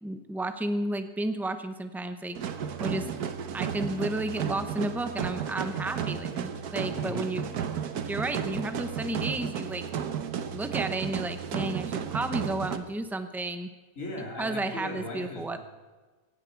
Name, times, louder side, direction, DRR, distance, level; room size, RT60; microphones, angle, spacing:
voice 1, 0.0-2.4 2.8-3.1 3.5-7.5 8.0-9.8 10.5-13.7 14.4-15.6, right 2 dB, 5° right, 9 dB, 0.3 m, -32 dB
sound 1, 2.3-12.8, right 7 dB, 70° right, 1.5 m, -33 dB
voice 2, 6.9-7.4 14.0-15.6, left 1 dB, 50° left, -2 dB, 3.3 m, -38 dB
17.5 x 16.5 x 4.6 m, 1.3 s
omnidirectional pair, 1.7 m